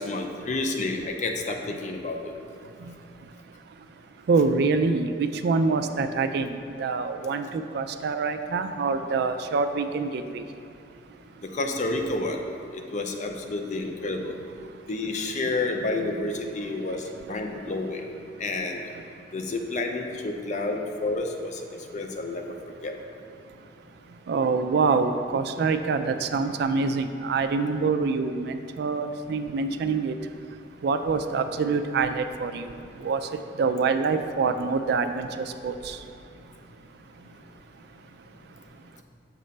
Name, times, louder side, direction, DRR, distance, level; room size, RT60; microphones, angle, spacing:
voice 1, 0.0-2.3 11.5-12.4 12.9-14.4 14.9-17.0 17.3-18.0 18.4-18.8 19.3-21.6 21.9-22.4 22.8-22.9, left 2 dB, 40° left, 3 dB, 0.5 m, -29 dB
voice 2, 4.3-10.4 24.3-30.1 30.8-32.7 33.0-33.2 33.6-36.0, right 4 dB, 60° right, 9 dB, 0.3 m, -25 dB
6.6 x 3.2 x 5.2 m, 2.6 s
head